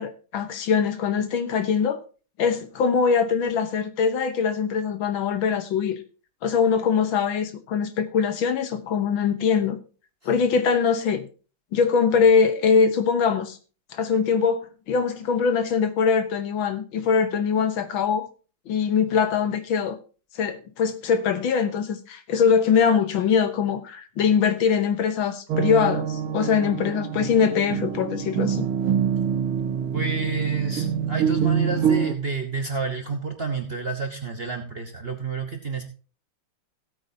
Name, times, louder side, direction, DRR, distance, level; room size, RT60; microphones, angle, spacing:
voice 1, 0.0-2.0 2.4-6.0 6.4-9.8 10.3-11.2 11.7-13.6 13.9-18.3 18.7-20.0 20.4-28.7, left 6 dB, 65° left, 1.8 m, -22 dB
sound 1, 25.5-32.1, right 8 dB, 80° right, 1.8 m, -25 dB
voice 2, 29.9-35.8, right 4 dB, 35° right, 1.0 m, -29 dB
16.5 x 8.6 x 2.8 m
omnidirectional pair, 2.4 m